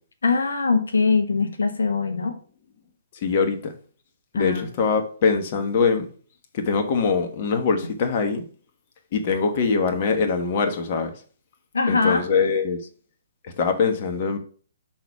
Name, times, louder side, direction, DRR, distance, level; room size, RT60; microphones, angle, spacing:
voice 1, 0.2-2.4 4.3-4.7 11.7-12.2, left 4 dB, 75° left, 6 dB, 1.2 m, -22 dB
voice 2, 3.2-3.7 4.3-6.1 6.5-8.4 9.1-11.1 11.9-12.8 13.6-14.4, left 5 dB, 45° left, 6 dB, 1.3 m, -23 dB
6.3 x 4.2 x 5.8 m, 0.42 s
figure-of-eight pair, 130°, 0 cm